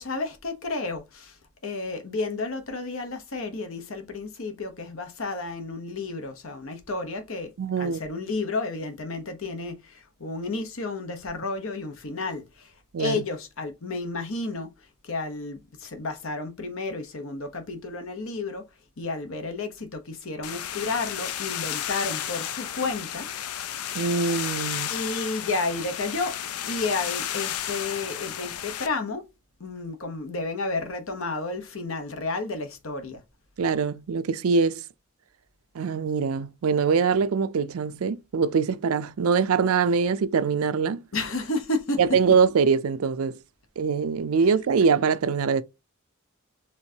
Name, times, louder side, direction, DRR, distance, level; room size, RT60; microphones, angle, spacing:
voice 1, 0.0-1.4 1.6-12.7 13.0-14.7 15.0-18.7 19.0-23.3 24.9-26.4 26.7-29.2 29.6-33.2 41.1-42.0, left 3 dB, 65° left, 0.9 m, -31 dB
voice 2, 7.6-8.0 12.9-13.2 23.9-24.9 33.6-34.8 35.7-41.0 42.0-43.4 43.8-45.6, right 5 dB, 75° right, 0.4 m, -23 dB
sound 1, 20.4-28.9, left 10 dB, 90° left, 0.5 m, -32 dB
4.4 x 3.7 x 2.8 m
head